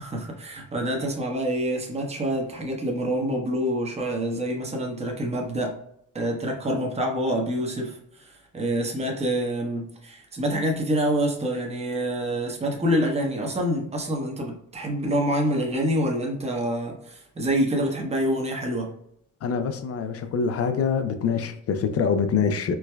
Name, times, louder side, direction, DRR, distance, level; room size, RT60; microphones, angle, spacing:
voice 1, 0.0-5.7 6.1-18.9, equal, 20° right, 0.9 m, -26 dB
voice 2, 19.4-22.7, left 6 dB, 50° left, 0.5 m, -25 dB
4.6 x 2.2 x 2.3 m
cardioid pair, 90°, 30 cm